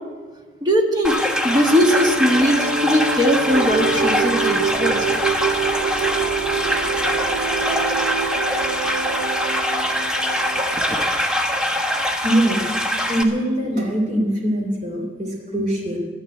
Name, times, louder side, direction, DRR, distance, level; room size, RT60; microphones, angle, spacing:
voice 1, 0.6-5.2, equal, 20° right, 2 dB, 1.5 m, -19 dB
sound 1, 1.0-13.2, equal, 5° right, 0.9 m, -23 dB
sound 2, 1.1-11.3, right 4 dB, 60° right, 0.6 m, -26 dB
voice 2, 12.2-12.6 13.0-16.0, right 1 dB, 40° right, 0 dB, 3.0 m, -22 dB
12.0 x 10.5 x 9.6 m, 1.5 s
head